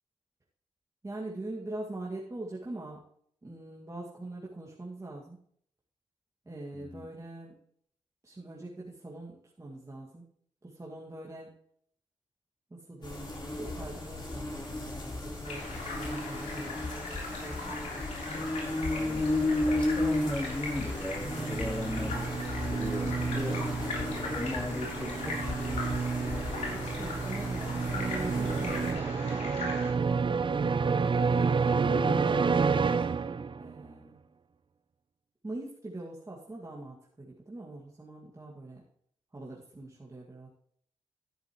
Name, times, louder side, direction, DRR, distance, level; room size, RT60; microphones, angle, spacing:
voice 1, 1.0-3.0 3.4-5.4 6.5-7.5 8.2-10.2 10.6-11.5 12.7-16.7 17.3-17.6 26.7-30.9 33.6-34.2 35.4-38.8 39.3-40.5, right 2 dB, 25° right, -4 dB, 2.0 m, -43 dB
voice 2, 6.7-7.1 18.9-19.4 19.7-23.7 24.2-25.9 31.8-33.0, left 1 dB, 10° left, 0 dB, 3.2 m, -38 dB
sound 1, 13.0-28.9, left 2 dB, 40° left, 3.9 m, -34 dB
sound 2, 15.4-29.9, left 3 dB, 85° left, 3.5 m, -40 dB
sound 3, 21.2-33.8, right 5 dB, 45° right, 0.6 m, -30 dB
11.5 x 10.5 x 3.1 m, 0.65 s
cardioid pair, 50°, 12 cm